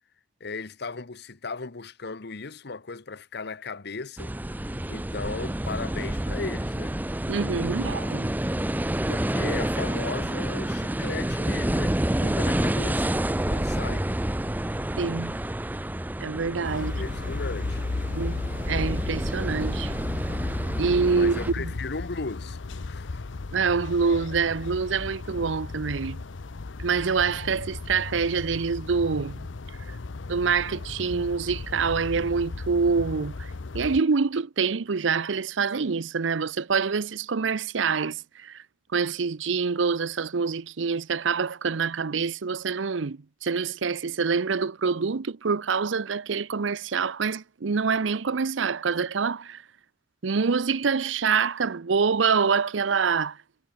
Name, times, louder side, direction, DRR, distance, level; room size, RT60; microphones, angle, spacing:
voice 1, 0.4-4.3 4.9-7.0 9.1-13.2 13.4-14.1 16.7-17.8 21.1-22.6 22.9-23.2, left 4 dB, 60° left, 1.1 m, -36 dB
sound 1, 4.2-21.5, right 1 dB, 10° right, 0.7 m, -29 dB
voice 2, 7.3-8.3 15.0-15.3 16.2-17.0 18.1-18.4 18.7-19.9 20.8-21.7 23.5-26.2 26.8-29.5 30.3-33.5 33.7-38.6 38.9-49.6 50.2-53.4, right 5 dB, 85° right, 0.7 m, -26 dB
sound 2, 16.6-34.0, left 3 dB, 80° left, 0.7 m, -35 dB
head